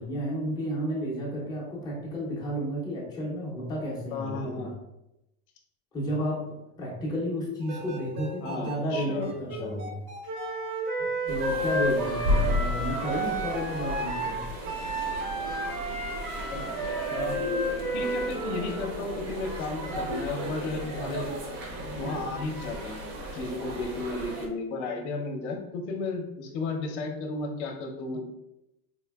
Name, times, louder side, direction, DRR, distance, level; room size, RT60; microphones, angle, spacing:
voice 1, 0.0-4.7 5.9-10.0 11.0-14.4, equal, 10° left, -5 dB, 0.5 m, -32 dB
voice 2, 4.1-4.7 8.4-9.3 9.6-9.8 16.5-16.6 17.1-17.4 17.9-21.3 22.0-23.0 23.3-28.3, left 3 dB, 50° left, 3 dB, 0.7 m, -34 dB
sound 1, 7.6-10.5, right 3 dB, 65° right, 1.0 m, -40 dB
Wind instrument woodwind instrument, 10.3-18.8, right 1 dB, 85° right, 1.4 m, -31 dB
sound 2, 11.3-24.5, left 1 dB, 40° right, 0.7 m, -34 dB
4.2 x 2.5 x 2.3 m, 0.89 s
supercardioid pair, 155°, 45 cm